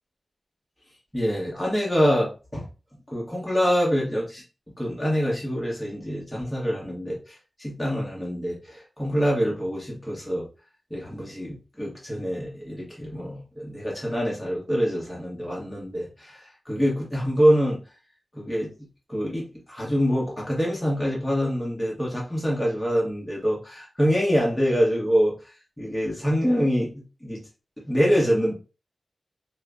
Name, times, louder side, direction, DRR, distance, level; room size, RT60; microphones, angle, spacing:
voice 1, 1.1-2.7 3.1-4.4 4.8-10.5 10.9-17.8 18.3-18.7 19.1-27.4 27.9-28.5, equal, 10° left, -5 dB, 1.5 m, -25 dB
5.5 x 2.4 x 2.7 m, 0.32 s
wide cardioid pair, 120°, 0 cm